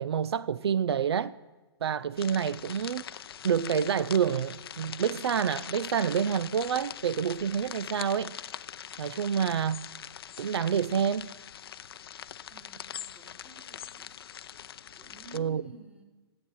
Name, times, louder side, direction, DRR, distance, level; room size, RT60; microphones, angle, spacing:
voice 1, 0.0-1.3 1.8-3.0 3.4-8.4 9.0-9.8 10.4-11.3 15.3-15.6, right 7 dB, 75° right, 0.4 m, -28 dB
sound 1, 2.2-15.4, left 9 dB, 65° left, 0.5 m, -42 dB
voice 2, 12.5-14.1 14.9-16.0, right 1 dB, 10° right, 1.9 m, -53 dB
12.5 x 8.4 x 6.2 m
hypercardioid pair, 125°, 14 cm